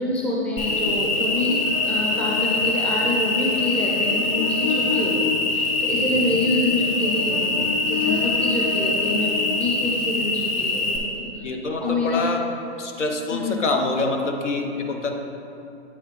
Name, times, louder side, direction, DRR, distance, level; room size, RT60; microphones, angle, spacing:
voice 1, 0.0-1.6 1.8-11.5 11.8-12.2 13.3-13.7, left 1 dB, 5° left, -5 dB, 0.5 m, -26 dB
Cricket, 0.6-11.0, left 3 dB, 30° left, 0.9 m, -23 dB
voice 2, 11.4-12.4 12.8-15.1, left 3 dB, 85° left, 3 dB, 0.9 m, -25 dB
8.5 x 4.8 x 3.2 m, 2.6 s
hypercardioid pair, 130°, 35 cm